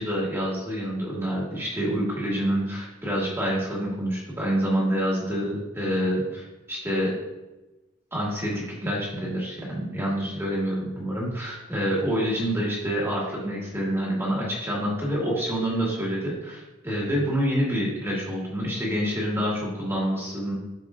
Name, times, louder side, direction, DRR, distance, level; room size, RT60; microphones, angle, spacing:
voice 1, 0.0-7.1 8.1-20.6, equal, 15° right, -5 dB, 2.0 m, -27 dB
12.0 x 4.8 x 2.5 m, 1.0 s
head